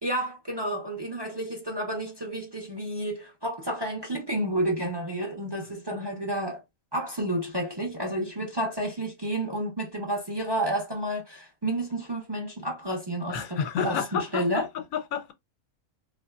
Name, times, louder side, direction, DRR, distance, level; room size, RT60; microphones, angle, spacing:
voice 1, 0.0-6.6 6.9-14.0 14.3-14.7, right 1 dB, 30° right, 0.5 m, -30 dB
voice 2, 13.3-15.3, left 7 dB, 85° left, 1.1 m, -30 dB
3.2 x 2.5 x 2.3 m
omnidirectional pair, 1.5 m